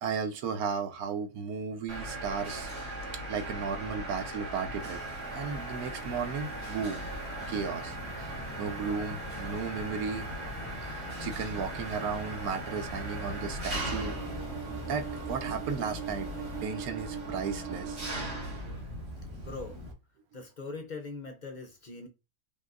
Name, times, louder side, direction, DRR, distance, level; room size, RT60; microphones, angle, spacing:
voice 1, 0.0-2.7 3.3-5.0 5.3-7.1 7.5-10.3 10.8-14.1 14.9-16.3 16.6-18.0, right 6 dB, 70° right, 1.1 m, -35 dB
Mechanisms, 1.9-19.9, right 2 dB, 40° right, 1.8 m, -38 dB
sound 1, 4.8-16.7, left 3 dB, 15° left, 0.9 m, -50 dB
sound 2, 7.3-19.9, left 2 dB, 15° right, 0.8 m, -46 dB
voice 2, 19.4-19.8 20.3-22.1, left 3 dB, 50° left, 0.5 m, -41 dB
5.0 x 3.4 x 2.6 m
omnidirectional pair, 1.7 m